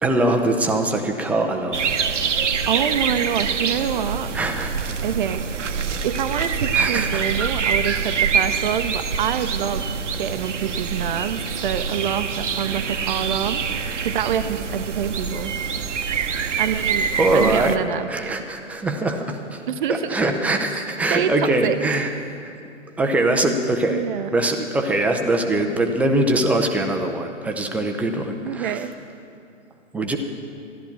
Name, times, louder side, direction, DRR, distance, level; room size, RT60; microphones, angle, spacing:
voice 1, 0.0-1.9 4.3-4.9 6.7-7.2 17.1-17.8 18.1-19.6 19.9-22.1 22.4-22.5 23.0-24.0 24.3-28.8 29.9-30.2, right 2 dB, 5° right, 3 dB, 0.6 m, -22 dB
sound 1, 1.7-17.8, right 6 dB, 70° right, 1.0 m, -25 dB
voice 2, 2.7-4.3 5.0-5.4 6.0-13.6 14.0-15.6 16.6-18.4 19.7-20.2 20.7-20.8 21.1-21.8 23.9-24.3 28.4-28.9, right 9 dB, 40° right, 10 dB, 0.8 m, -26 dB
14.5 x 12.0 x 7.2 m, 2.6 s
figure-of-eight pair, 125°, 37 cm